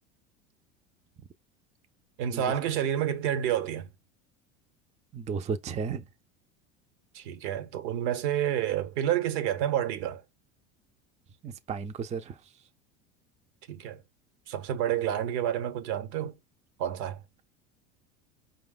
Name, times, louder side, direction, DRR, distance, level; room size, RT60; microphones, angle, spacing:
voice 1, 2.2-3.9 7.1-10.2 13.7-14.0 14.5-16.4 16.8-17.2, right 10 dB, 80° right, 1.2 m, -29 dB
voice 2, 5.1-6.1 11.4-12.4, right 6 dB, 20° right, 0.5 m, -34 dB
4.8 x 2.3 x 3.8 m
supercardioid pair, 105°, 32 cm